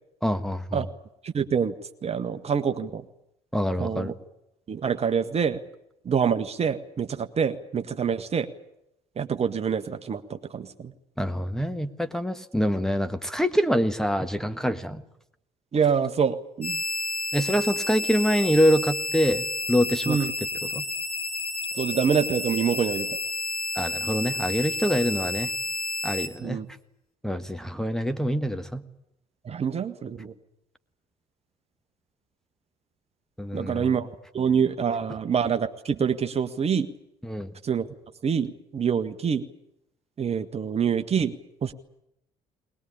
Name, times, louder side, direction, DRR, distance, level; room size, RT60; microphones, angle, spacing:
voice 1, 0.2-0.8 3.5-4.1 11.2-15.0 17.3-20.2 20.6-20.8 23.7-25.5 26.0-26.6 27.2-28.8 33.4-33.9 37.2-37.5, equal, ahead, 10 dB, 1.5 m, -25 dB
voice 2, 1.2-1.7 2.0-3.0 3.8-4.1 4.7-5.6 6.0-8.5 9.2-10.9 15.7-16.8 20.1-20.3 21.7-23.1 26.4-26.7 29.4-30.3 33.5-34.1 34.3-36.9 37.6-37.9 38.2-39.4 40.2-41.3 41.6-41.7, right 7 dB, 35° right, 9 dB, 1.3 m, -26 dB
sound 1, 16.6-26.3, left 2 dB, 85° left, 3.0 m, -30 dB
21.0 x 20.5 x 10.0 m, 0.82 s
figure-of-eight pair, 50°, 19 cm